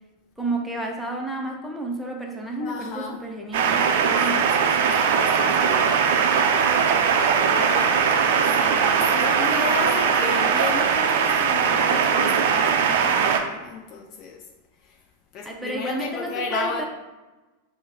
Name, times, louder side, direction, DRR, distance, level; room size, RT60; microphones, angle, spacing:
voice 1, 0.4-4.5 15.4-16.9, right 2 dB, ahead, 0 dB, 0.7 m, -31 dB
voice 2, 2.6-3.2 4.3-6.5 7.0-7.1 7.5-14.5 14.8-15.0 15.3-16.9, left 5 dB, 40° left, 3 dB, 0.4 m, -34 dB
sound 1, 3.5-13.4, right 6 dB, 55° right, 0.4 m, -20 dB
6.0 x 2.1 x 4.0 m, 1.2 s
figure-of-eight pair, 90°, 0 cm